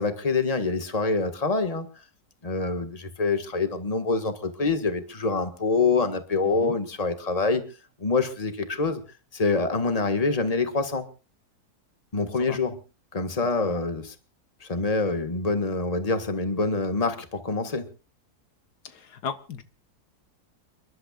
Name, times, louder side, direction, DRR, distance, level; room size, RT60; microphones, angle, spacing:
voice 1, 0.0-1.9 2.4-7.6 8.0-9.0 9.3-11.1 12.1-12.8 13.1-14.1 14.6-17.9, left 3 dB, 25° left, 1.7 m, -26 dB
voice 2, 6.4-6.8 12.4-12.6 13.4-13.8 18.8-19.6, left 6 dB, 85° left, 1.8 m, -37 dB
30.0 x 11.5 x 2.4 m
omnidirectional pair, 1.7 m